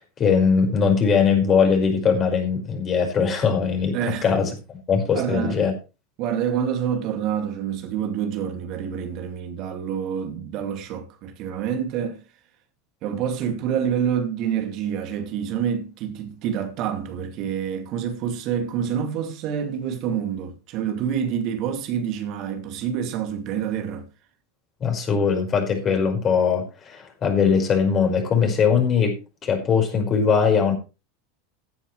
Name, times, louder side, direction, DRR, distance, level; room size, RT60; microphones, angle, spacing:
voice 1, 0.2-4.0 4.2-5.7 24.8-30.7, left 6 dB, 35° left, 5.4 m, -21 dB
voice 2, 3.9-4.3 5.1-5.6 6.2-12.2 13.0-24.1, right 8 dB, 50° right, 2.5 m, -27 dB
16.0 x 9.8 x 3.3 m
hypercardioid pair, 85°, 0 cm